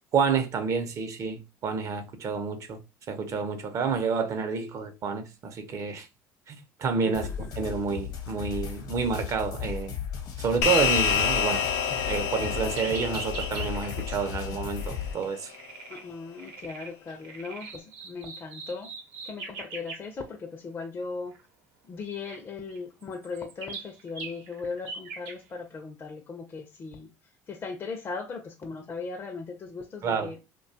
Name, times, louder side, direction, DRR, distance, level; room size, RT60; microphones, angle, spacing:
voice 1, 0.1-2.8 3.1-6.1 6.5-10.0 10.4-11.6 12.1-15.5 30.0-30.3, right 5 dB, 50° right, 0.6 m, -29 dB
voice 2, 7.0-7.5 15.9-18.9 19.2-21.4 21.9-27.1 27.5-30.4, left 4 dB, 35° left, 0.4 m, -38 dB
sound 1, 7.1-15.1, left 8 dB, 70° left, 0.9 m, -36 dB
sound 2, 10.6-15.3, left 8 dB, 85° left, 0.5 m, -28 dB
sound 3, 10.9-14.2 14.5-15.1 15.5-16.0 16.3-20.1 21.3-21.4 22.2-22.4 22.7-25.4, right 3 dB, 85° right, 0.8 m, -41 dB
2.6 x 2.2 x 2.7 m
supercardioid pair, 95°, 7 cm